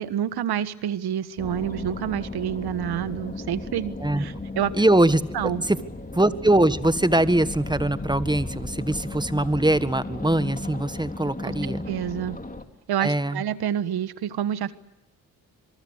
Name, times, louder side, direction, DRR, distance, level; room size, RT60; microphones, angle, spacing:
voice 1, 0.0-4.7 5.3-5.6 11.4-12.4 12.9-14.7, right 10 dB, 65° right, 15 dB, 1.5 m, -28 dB
sound 1, 1.4-12.6, left 2 dB, 20° left, 3.6 m, -35 dB
voice 2, 4.7-5.2 5.6-5.8 6.1-11.8 13.0-13.4, right 1 dB, 10° right, 14 dB, 1.6 m, -22 dB
25.5 x 23.0 x 8.1 m, 0.92 s
hypercardioid pair, 45°, 41 cm